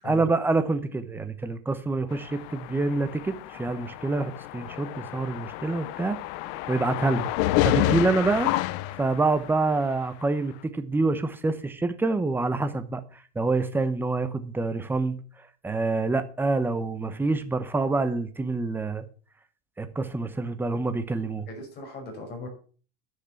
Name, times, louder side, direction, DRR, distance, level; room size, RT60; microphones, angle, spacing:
voice 1, 0.0-6.2 6.7-7.3 7.6-8.5 9.0-13.0 13.4-15.2 15.6-19.0 19.8-21.5, right 3 dB, 5° right, 0.8 m, -26 dB
sound 1, 2.1-9.8, left 16 dB, 55° left, 0.7 m, -29 dB
voice 2, 21.5-22.5, left 3 dB, 30° left, 5.5 m, -37 dB
10.0 x 6.6 x 7.1 m
supercardioid pair, 150°, 32 cm